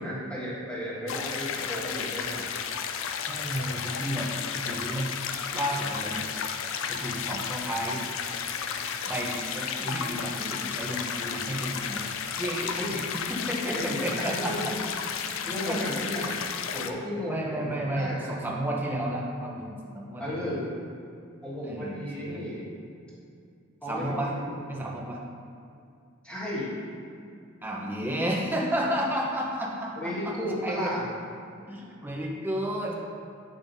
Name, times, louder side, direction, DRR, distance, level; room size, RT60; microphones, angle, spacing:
voice 1, 0.0-2.5 12.8-12.9 13.7-14.7 15.5-16.3 16.7-18.3 20.2-20.6 21.4-22.6 23.8-24.4 26.2-26.7 30.0-31.0, equal, 5° left, -9 dB, 1.6 m, -34 dB
sound 1, 1.1-16.9, left 7 dB, 70° left, 0.4 m, -33 dB
voice 2, 3.3-4.3 4.6-5.1 5.5-6.3 6.9-8.0 9.1-12.1 12.4-13.0 13.3-14.7 15.4-15.8 17.3-20.6 21.6-22.4 23.9-24.3 24.7-25.2 27.6-30.3 30.6-30.9 31.7-32.9, right 1 dB, 10° right, -3 dB, 0.8 m, -32 dB
8.9 x 5.5 x 2.7 m, 2.5 s
head